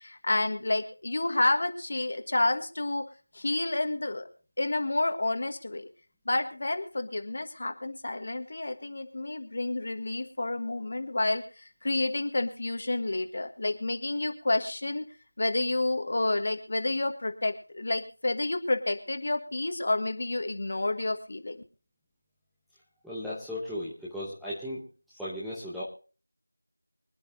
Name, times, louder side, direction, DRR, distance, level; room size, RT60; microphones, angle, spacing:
voice 1, 0.0-3.0 3.3-4.3 4.6-5.9 6.2-15.0 15.4-21.6, left 2 dB, 35° left, 8 dB, 1.5 m, -29 dB
voice 2, 23.0-24.9 25.2-25.8, left 1 dB, ahead, -10 dB, 0.9 m, -36 dB
24.5 x 10.0 x 2.7 m, 0.37 s
figure-of-eight pair, 175°, 0 cm